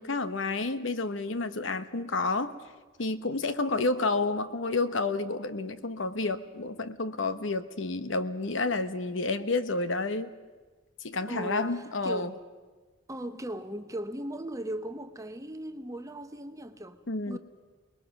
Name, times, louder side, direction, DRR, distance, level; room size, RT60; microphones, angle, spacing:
voice 1, 0.0-2.5 3.0-10.3 11.0-12.3 17.1-17.4, left 3 dB, 65° left, 1.0 m, -30 dB
voice 2, 11.3-12.3 13.1-17.0 17.3-17.4, right 1 dB, 15° right, 0.9 m, -38 dB
28.5 x 20.5 x 6.0 m
head